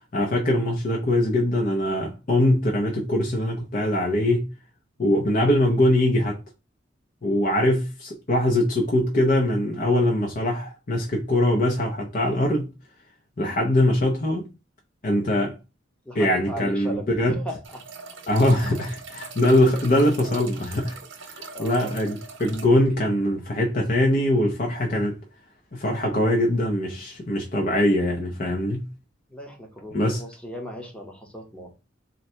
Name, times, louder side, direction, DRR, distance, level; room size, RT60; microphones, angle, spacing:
voice 1, 0.1-4.5 5.0-6.4 7.2-12.7 13.4-14.5 15.0-15.6 16.1-17.4 18.3-25.2 25.7-28.9 29.9-30.2, left 1 dB, 45° left, 0.7 m, -22 dB
voice 2, 16.0-17.8 18.6-18.9 21.5-22.0 29.3-31.7, equal, 5° left, 0.9 m, -37 dB
sound 1, 17.6-22.7, right 5 dB, 80° right, 0.9 m, -41 dB
3.8 x 2.2 x 4.3 m
head